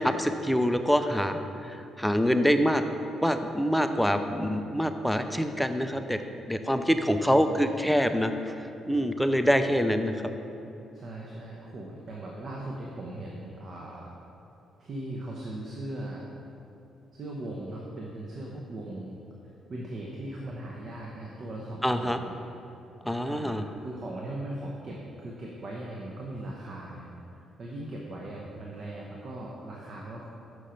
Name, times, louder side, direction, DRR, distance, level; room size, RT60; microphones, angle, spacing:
voice 1, 0.0-2.8 3.2-8.3 8.9-10.1 21.8-22.2 23.0-23.6, equal, ahead, 7 dB, 0.4 m, -25 dB
voice 2, 7.3-8.0 10.9-14.1 14.8-16.3 17.1-19.2 19.7-22.4 23.2-30.2, right 1 dB, 50° right, -3 dB, 0.9 m, -39 dB
6.3 x 5.7 x 5.1 m, 2.8 s
cardioid pair, 90°, 0 cm